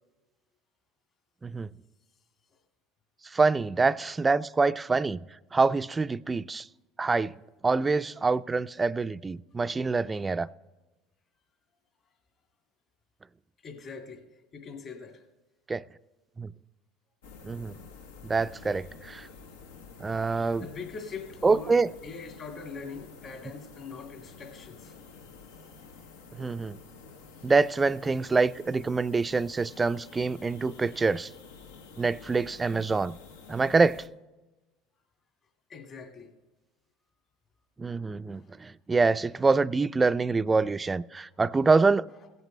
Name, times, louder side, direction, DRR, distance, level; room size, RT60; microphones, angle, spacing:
voice 1, 3.3-5.2 5.5-6.7 7.0-7.3 7.6-10.5 15.7-15.8 16.4-16.5 17.4-17.8 18.2-19.3 20.0-20.7 21.4-21.9 26.4-26.8 27.4-31.3 32.0-33.2 33.5-34.0 37.8-42.1, right 4 dB, 20° right, 0.3 m, -25 dB
voice 2, 13.6-14.3 14.5-15.2 20.6-25.0 35.7-36.3 38.3-38.6, left 5 dB, 45° left, 2.0 m, -42 dB
sound 1, 17.2-34.1, left 4 dB, 90° left, 0.9 m, -50 dB
16.5 x 8.0 x 3.2 m
supercardioid pair, 85°, 0 cm